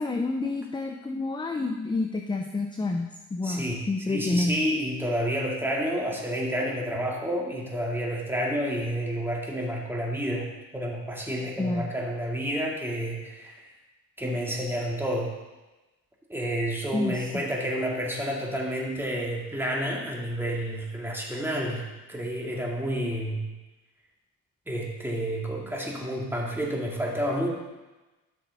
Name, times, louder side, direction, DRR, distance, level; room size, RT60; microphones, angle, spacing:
voice 1, 0.0-4.6 11.6-11.9 16.9-17.4, left 2 dB, 15° left, 4 dB, 0.6 m, -29 dB
voice 2, 3.4-13.6 14.2-15.3 16.3-23.4 24.7-27.5, equal, 5° right, -2 dB, 2.3 m, -30 dB
13.0 x 6.1 x 4.1 m, 1.1 s
cardioid pair, 90°, 30 cm